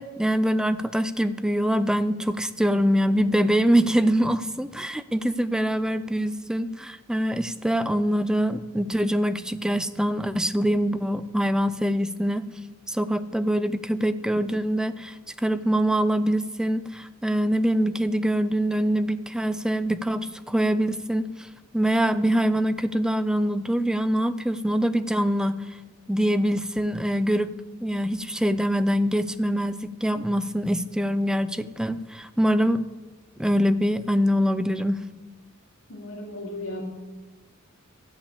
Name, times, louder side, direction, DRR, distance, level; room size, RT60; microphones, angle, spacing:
voice 1, 0.0-12.5 12.9-15.1 15.4-21.5 21.7-25.6 26.1-27.5 27.8-32.8 33.4-35.0, equal, 5° right, 12 dB, 0.4 m, -24 dB
voice 2, 35.9-36.8, left 1 dB, 85° left, -6 dB, 2.5 m, -36 dB
13.5 x 5.7 x 8.5 m, 1.2 s
head